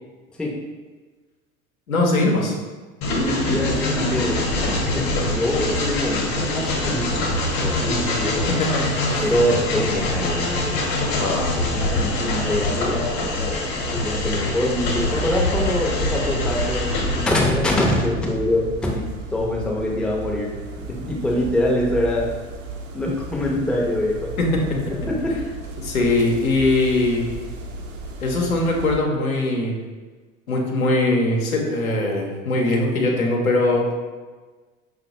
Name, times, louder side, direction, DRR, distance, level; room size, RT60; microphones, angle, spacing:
voice 1, 1.9-2.6 8.6-8.8 9.1-9.2 11.2-11.5 24.4-24.8 25.8-27.3 28.2-29.7 30.5-33.9, left 2 dB, 85° left, -1 dB, 0.7 m, -21 dB
Train, 3.0-17.3, left 2 dB, 55° left, 0.9 m, -24 dB
voice 2, 3.2-4.5 4.8-8.4 9.2-11.2 11.5-19.0 19.3-22.3 22.9-24.3 25.1-25.4, left 1 dB, ahead, -2 dB, 0.5 m, -24 dB
sound 1, 14.9-29.0, right 2 dB, 65° right, 0.6 m, -33 dB
5.1 x 2.2 x 2.9 m, 1.3 s
figure-of-eight pair, 70°, 41 cm